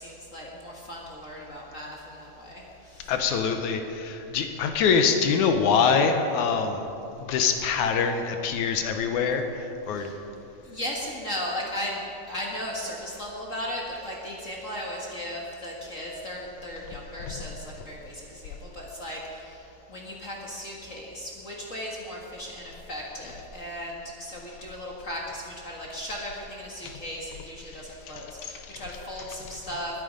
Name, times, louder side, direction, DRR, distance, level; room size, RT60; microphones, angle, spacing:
voice 1, 0.0-3.2 9.9-10.2 10.6-30.0, equal, 40° left, -2 dB, 1.1 m, -36 dB
voice 2, 3.1-6.8 7.2-10.1, left 6 dB, 70° left, 6 dB, 2.1 m, -24 dB
21.0 x 9.3 x 5.2 m, 2.8 s
omnidirectional pair, 3.8 m